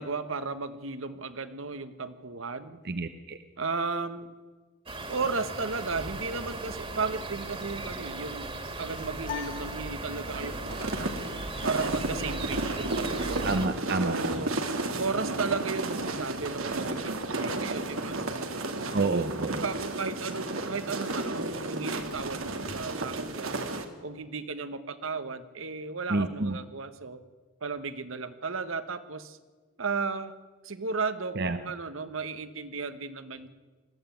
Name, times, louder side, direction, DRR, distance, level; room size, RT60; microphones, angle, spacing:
voice 1, 0.0-2.8 3.6-4.3 5.1-8.5 8.8-11.1 11.6-13.3 14.0-14.6 14.9-18.5 19.1-23.6 24.0-27.2 27.6-29.4 29.8-30.3 30.6-33.5, right 4 dB, 70° right, 12 dB, 1.2 m, -34 dB
voice 2, 2.8-3.4 13.4-14.5 18.9-19.6 26.1-26.6 31.4-31.6, right 3 dB, 50° right, 9 dB, 0.9 m, -29 dB
sound 1, 4.9-13.7, right 2 dB, 25° right, 2.2 m, -37 dB
sound 2, 9.2-10.7, left 9 dB, 40° left, 2.3 m, -41 dB
sound 3, 10.3-23.8, right 2 dB, 90° right, 2.0 m, -33 dB
20.0 x 14.5 x 9.2 m, 1.3 s
head